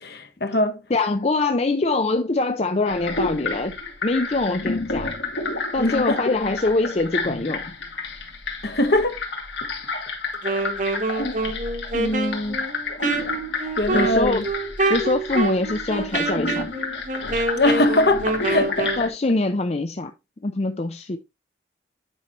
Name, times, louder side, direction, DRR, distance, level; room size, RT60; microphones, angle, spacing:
voice 1, 0.0-0.8 5.8-6.2 8.6-9.2 11.2-11.4 11.9-12.6 13.8-14.5 17.5-18.9, left 1 dB, 55° left, 1.2 m, -22 dB
voice 2, 0.9-3.7 4.0-5.1 5.7-7.6 13.9-14.4 14.9-16.7 19.0-20.1 20.4-21.2, left 2 dB, 35° left, 0.5 m, -23 dB
sound 1, 2.9-19.1, left 3 dB, 75° left, 2.2 m, -30 dB
Wind instrument woodwind instrument, 10.3-19.1, right 3 dB, 40° right, 1.3 m, -27 dB
9.0 x 5.7 x 3.0 m
head